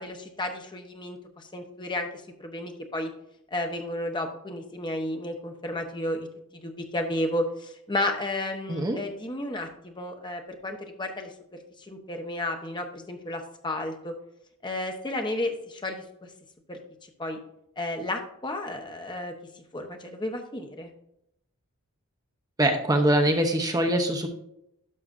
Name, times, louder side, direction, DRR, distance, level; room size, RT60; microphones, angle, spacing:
voice 1, 0.0-2.1 2.4-3.1 3.5-6.3 6.6-11.6 11.9-14.1 14.6-16.0 16.7-16.8 17.2-17.4 17.8-19.3 19.7-20.9, left 1 dB, 20° left, 4 dB, 0.9 m, -32 dB
voice 2, 22.6-24.3, right 1 dB, 15° right, 4 dB, 0.8 m, -23 dB
11.0 x 6.0 x 2.6 m, 0.79 s
head